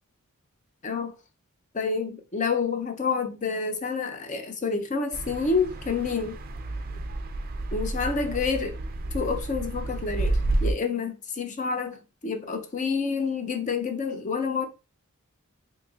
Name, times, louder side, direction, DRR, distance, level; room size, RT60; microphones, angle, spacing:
voice 1, 0.8-1.1 1.7-6.4 7.7-8.8 9.1-14.7, left 5 dB, 35° left, 0.5 m, -28 dB
sound 1, 5.1-10.7, right 2 dB, 40° right, 0.4 m, -30 dB
4.0 x 2.9 x 2.4 m
head